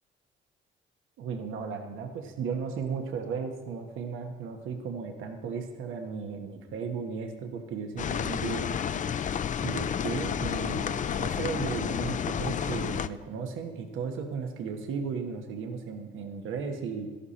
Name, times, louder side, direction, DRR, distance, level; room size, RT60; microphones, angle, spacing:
voice 1, 1.2-8.8 9.6-17.1, right 5 dB, 85° right, 4 dB, 1.4 m, -35 dB
sound 1, 8.0-13.1, left 8 dB, 40° left, 0.4 m, -31 dB
13.0 x 11.0 x 4.2 m, 1.4 s
cardioid pair, 90°, 20 cm